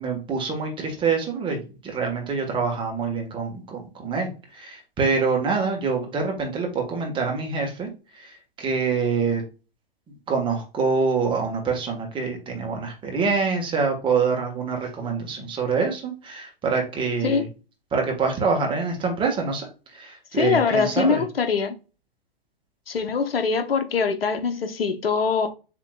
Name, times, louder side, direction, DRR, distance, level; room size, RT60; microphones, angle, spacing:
voice 1, 0.0-7.9 8.2-9.4 10.3-17.4 17.9-19.7 19.9-21.2, right 5 dB, 15° right, 1.3 m, -25 dB
voice 2, 20.3-21.8 22.9-25.5, left 5 dB, 70° left, 0.9 m, -23 dB
7.3 x 3.0 x 2.3 m
figure-of-eight pair, 110°, 30 cm